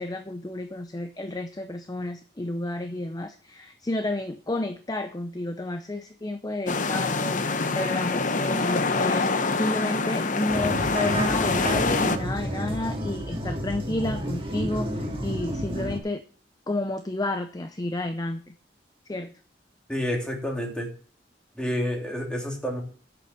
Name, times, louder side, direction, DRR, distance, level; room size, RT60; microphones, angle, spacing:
voice 1, 0.0-16.2 16.7-18.5 19.1-19.3, left 2 dB, 20° left, 8 dB, 0.6 m, -31 dB
sound 1, 6.7-12.2, left 3 dB, 45° left, 0.8 m, -25 dB
sound 2, 10.5-16.0, equal, 30° right, 1.9 m, -30 dB
voice 2, 19.9-20.9 21.6-22.8, equal, 5° left, 0 dB, 2.9 m, -29 dB
8.3 x 6.9 x 7.6 m, 0.42 s
head